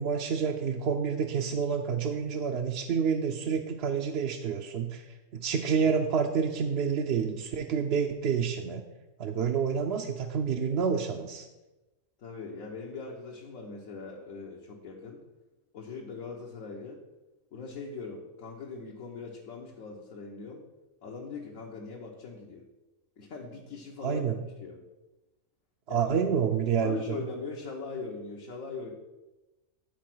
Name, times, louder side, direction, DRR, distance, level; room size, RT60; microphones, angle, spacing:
voice 1, 0.0-5.0 5.3-8.8 9.2-11.5 24.0-24.4 25.9-27.2, right 6 dB, 60° right, 3 dB, 0.7 m, -28 dB
voice 2, 12.2-15.2 15.7-17.0 17.5-20.6 21.0-22.6 23.2-24.3 24.6-24.8 25.9-26.1 26.8-28.9, left 4 dB, 70° left, -2 dB, 1.5 m, -41 dB
10.5 x 4.1 x 6.0 m, 1.1 s
omnidirectional pair, 1.5 m